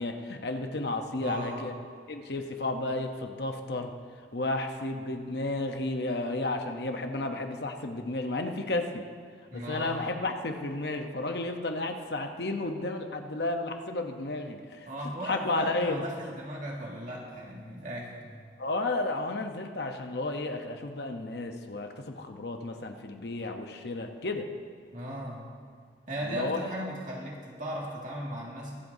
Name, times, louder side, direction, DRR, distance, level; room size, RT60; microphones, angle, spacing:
voice 1, 0.0-1.7 2.1-3.9 4.3-9.1 9.5-16.0 18.6-24.5 26.2-26.8, left 2 dB, 60° left, 5 dB, 0.9 m, -32 dB
voice 2, 1.2-1.6 9.5-10.1 14.9-18.4 24.9-25.5 26.1-28.7, right 1 dB, 45° right, -3 dB, 2.1 m, -37 dB
23.5 x 8.0 x 2.7 m, 2.1 s
head